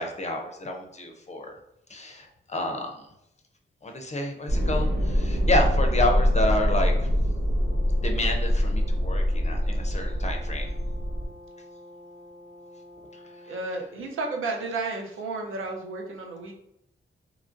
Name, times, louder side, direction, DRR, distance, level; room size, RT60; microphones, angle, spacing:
voice 1, 0.0-1.6 1.9-2.9 3.8-7.1 8.0-10.7 13.4-13.5, left 1 dB, 35° left, 3 dB, 0.4 m, -29 dB
sound 1, 4.5-11.3, equal, 65° right, 1.1 m, -24 dB
Brass instrument, 7.4-13.7, left 1 dB, 20° right, 0.8 m, -48 dB
voice 2, 13.5-16.5, right 3 dB, 85° right, 0 dB, 0.6 m, -32 dB
3.0 x 2.4 x 2.4 m, 0.82 s
cardioid pair, 70°, 20 cm